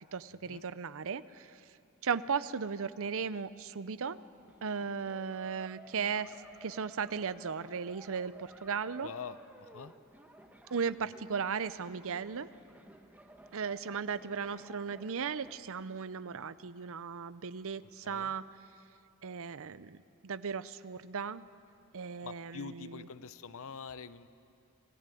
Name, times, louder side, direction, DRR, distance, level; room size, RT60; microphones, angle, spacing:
voice 1, 0.1-1.6 2.0-4.2 4.6-6.3 6.6-9.1 10.7-12.5 13.5-18.4 19.2-20.0 20.2-21.4 21.9-23.1, right 6 dB, 65° right, 15 dB, 0.7 m, -36 dB
sound 1, 4.4-15.6, right 1 dB, 5° right, 1.4 m, -55 dB
voice 2, 9.0-9.9 18.0-18.3 22.2-24.3, left 5 dB, 65° left, 14 dB, 0.8 m, -45 dB
26.5 x 17.5 x 9.2 m, 2.6 s
head